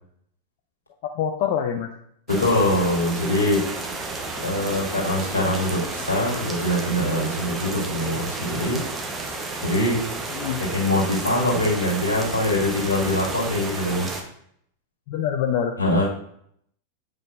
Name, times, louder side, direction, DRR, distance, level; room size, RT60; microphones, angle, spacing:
voice 1, 1.0-1.9 10.3-10.6 15.1-15.8, left 8 dB, 45° left, 4 dB, 0.5 m, -25 dB
voice 2, 2.3-3.6 4.4-8.8 9.6-10.0 10.7-14.1 15.8-16.0, left 1 dB, 75° left, -4 dB, 1.9 m, -23 dB
sound 1, 2.3-14.2, right 3 dB, 20° right, 0.9 m, -32 dB
8.1 x 5.1 x 2.4 m, 0.69 s
figure-of-eight pair, 90°, 0 cm